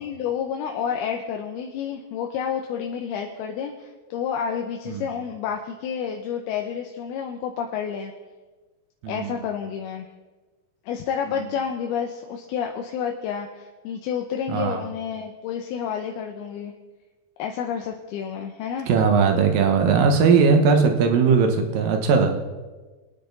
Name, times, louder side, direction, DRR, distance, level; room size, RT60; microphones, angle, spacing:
voice 1, 0.0-8.1 9.1-10.1 10.9-16.7 17.4-18.9, left 7 dB, 80° left, 3 dB, 2.7 m, -30 dB
voice 2, 9.0-9.4 11.3-11.5 14.5-14.8 18.9-22.4, right 5 dB, 65° right, 5 dB, 2.8 m, -19 dB
24.5 x 9.5 x 4.0 m, 1.3 s
omnidirectional pair, 4.6 m